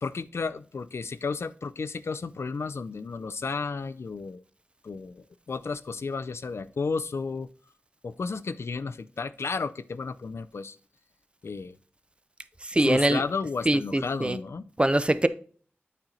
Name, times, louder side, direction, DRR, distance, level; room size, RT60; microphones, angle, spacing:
voice 1, 0.0-4.4 4.8-7.5 8.0-10.8 11.4-11.8 12.8-14.7, left 4 dB, 90° left, 0.4 m, -33 dB
voice 2, 12.7-13.2 13.6-14.4 14.8-15.3, right 1 dB, 25° right, 0.5 m, -23 dB
8.9 x 4.3 x 3.8 m
wide cardioid pair, 65°, 4 cm